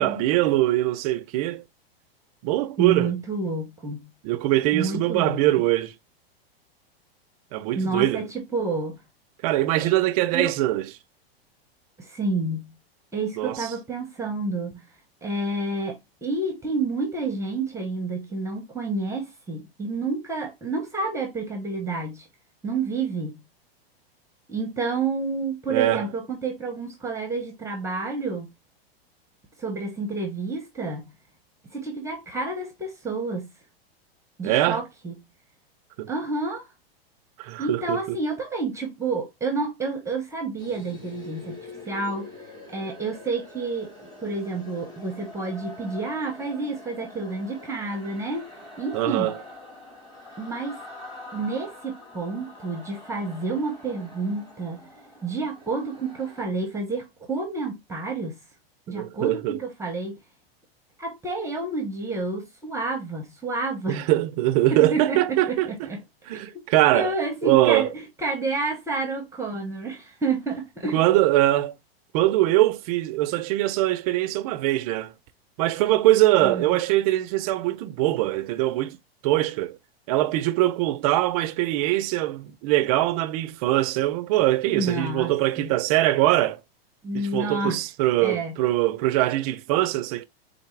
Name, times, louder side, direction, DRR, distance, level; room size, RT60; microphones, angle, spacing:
voice 1, 0.0-1.6 2.4-3.1 4.2-5.9 7.5-8.2 9.4-10.9 13.4-13.7 25.7-26.1 34.4-34.8 36.0-36.1 37.4-38.2 48.9-49.4 58.9-59.6 63.9-65.9 66.3-67.1 67.4-67.9 70.9-71.8 72.1-75.1 75.6-79.0 79.2-79.8 80.1-86.6 87.1-90.2, right 15 dB, 40° right, 0.4 m, -22 dB
voice 2, 2.8-4.1 4.7-5.4 7.8-9.0 9.8-9.9 10.3-10.5 12.0-12.7 13.1-14.8 15.2-22.3 22.6-23.4 24.5-28.5 29.6-31.1 31.7-33.5 34.4-35.1 36.1-36.7 37.6-42.3 42.7-43.9 44.2-48.5 48.8-49.3 50.4-50.8 51.3-54.8 55.2-58.4 58.9-60.2 61.0-64.0 64.7-66.0 66.5-66.6 66.9-71.0 76.4-76.8 84.7-85.8 87.0-87.8 88.2-88.6, right 3 dB, 10° right, 0.8 m, -29 dB
sound 1, 40.6-56.4, left 2 dB, 15° left, 1.6 m, -44 dB
4.0 x 3.3 x 3.1 m
hypercardioid pair, 140°, 31 cm